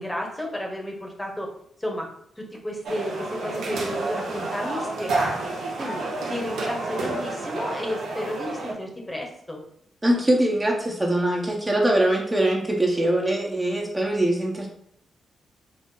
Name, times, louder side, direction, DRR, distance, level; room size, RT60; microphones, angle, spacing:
voice 1, 0.0-1.5 1.8-2.1 2.4-5.5 5.8-9.6, left 1 dB, 15° left, 0 dB, 0.9 m, -32 dB
sound 1, 2.8-8.7, right 2 dB, 85° right, 0.7 m, -30 dB
voice 2, 10.0-14.7, right 1 dB, 20° right, -1 dB, 0.7 m, -22 dB
3.9 x 2.0 x 3.7 m, 0.69 s
cardioid pair, 65°, 0 cm